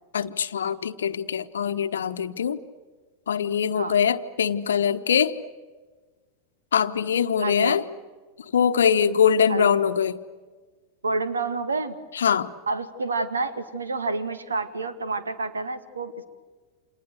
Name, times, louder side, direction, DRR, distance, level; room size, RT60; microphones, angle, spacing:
voice 1, 0.1-2.6 3.3-5.3 6.7-7.8 8.4-10.2 12.1-12.5, left 7 dB, 65° left, 12 dB, 1.1 m, -23 dB
voice 2, 7.4-7.8 9.5-9.7 11.0-12.0 12.7-16.2, right 3 dB, 75° right, 11 dB, 2.1 m, -29 dB
29.5 x 28.0 x 6.6 m, 1.4 s
figure-of-eight pair, 90°, 0 cm